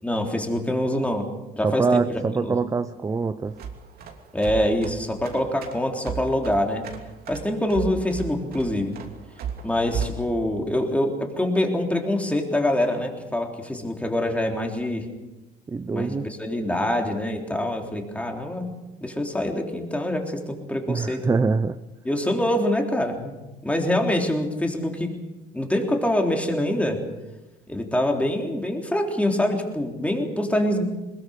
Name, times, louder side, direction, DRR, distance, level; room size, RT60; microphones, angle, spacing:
voice 1, 0.0-2.6 4.3-6.9 7.3-8.9 9.6-15.1 15.9-18.7 19.0-21.2 22.0-23.4 23.6-25.1 25.5-27.0 27.7-30.8, left 1 dB, 10° left, 2 dB, 3.6 m, -25 dB
voice 2, 1.6-3.6 15.7-16.3 20.9-21.8, right 4 dB, 20° right, 11 dB, 0.6 m, -24 dB
sound 1, 3.5-10.3, right 6 dB, 65° right, 2.9 m, -35 dB
21.5 x 21.0 x 6.5 m, 1.1 s
cardioid pair, 110°, 17 cm